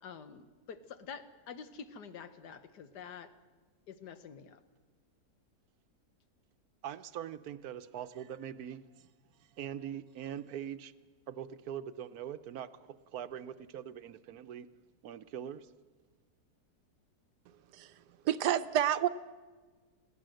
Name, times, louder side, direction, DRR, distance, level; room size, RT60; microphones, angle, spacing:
voice 1, 0.0-3.3 3.9-4.6, left 6 dB, 85° left, 11 dB, 1.7 m, -47 dB
voice 2, 6.8-9.1 9.4-10.9 11.3-14.7 15.0-15.7, right 9 dB, 70° right, 12 dB, 1.2 m, -42 dB
voice 3, 17.7-19.1, right 11 dB, 90° right, 12 dB, 1.4 m, -30 dB
21.0 x 16.5 x 7.7 m, 1.4 s
omnidirectional pair, 1.7 m